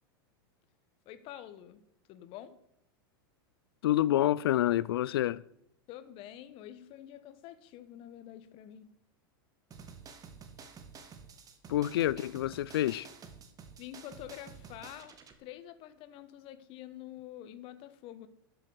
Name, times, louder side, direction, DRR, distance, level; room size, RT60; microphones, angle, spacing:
voice 1, 1.0-1.8 2.1-2.5 5.9-8.9 13.8-18.3, left 12 dB, 45° left, 1.3 m, -47 dB
voice 2, 3.8-5.4 11.7-13.1, left 13 dB, 80° left, 0.4 m, -28 dB
sound 1, 9.7-15.3, right 5 dB, 30° right, 1.9 m, -50 dB
12.5 x 7.7 x 6.4 m
hypercardioid pair, 110°, 12 cm